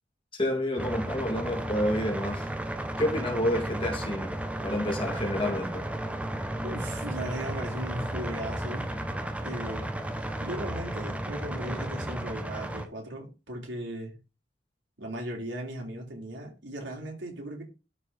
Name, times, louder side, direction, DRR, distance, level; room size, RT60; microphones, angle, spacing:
voice 1, 0.3-2.5 3.0-5.8, left 1 dB, 30° left, 2.6 m, -29 dB
sound 1, 0.8-12.9, right 1 dB, 5° right, 0.8 m, -34 dB
voice 2, 6.6-8.9 9.4-14.1 15.0-17.6, right 1 dB, 80° right, 3.8 m, -37 dB
12.5 x 4.5 x 4.2 m
head